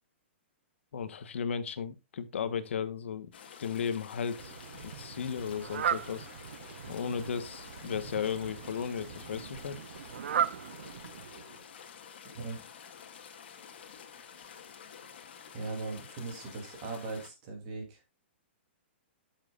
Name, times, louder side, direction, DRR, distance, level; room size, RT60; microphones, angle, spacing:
voice 1, 0.9-3.3 3.6-4.5 4.8-6.3 6.9-9.8, left 7 dB, 70° left, 1.2 m, -35 dB
sound 1, 3.3-17.3, left 7 dB, 55° left, 1.9 m, -50 dB
Fowl, 4.3-11.6, right 9 dB, 65° right, 0.6 m, -37 dB
voice 2, 12.2-12.6 15.5-18.0, right 3 dB, 30° right, 3.1 m, -39 dB
12.5 x 7.3 x 2.5 m
hypercardioid pair, 180°, 7 cm